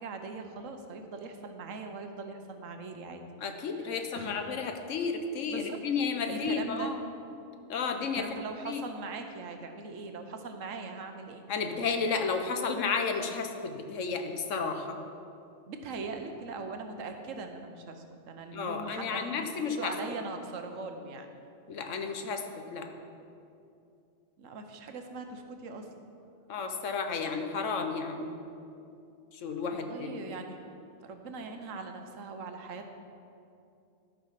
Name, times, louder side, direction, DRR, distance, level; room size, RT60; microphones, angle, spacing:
voice 1, 0.0-3.2 3.7-4.4 5.5-5.8 6.3-6.9 8.1-11.5 15.7-21.3 24.4-25.9 29.7-32.9, right 4 dB, 85° right, 5 dB, 1.3 m, -41 dB
voice 2, 3.4-7.0 7.7-8.8 11.5-15.0 18.5-19.9 21.7-22.9 26.5-28.4 29.3-30.1, left 5 dB, 75° left, 5 dB, 1.2 m, -32 dB
13.0 x 5.8 x 5.7 m, 2.6 s
omnidirectional pair, 1.3 m